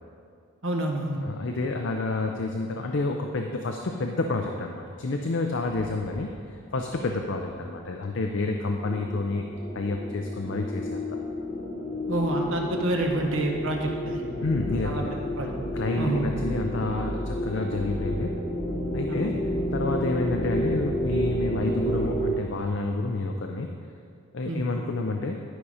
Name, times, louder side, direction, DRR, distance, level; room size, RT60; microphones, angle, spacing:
voice 1, 0.6-1.2 12.1-14.2 14.8-15.0 15.4-15.5 16.0-16.2 19.1-19.2 24.4-24.6, right 1 dB, 65° right, 1 dB, 1.1 m, -28 dB
voice 2, 1.2-9.4 9.7-11.2 14.4-15.2 15.7-18.4 18.9-23.7 24.3-25.4, left 3 dB, 55° left, 3 dB, 0.5 m, -29 dB
sound 1, 5.6-22.3, equal, 30° left, 1.3 m, -31 dB
11.5 x 5.5 x 4.9 m, 2.3 s
head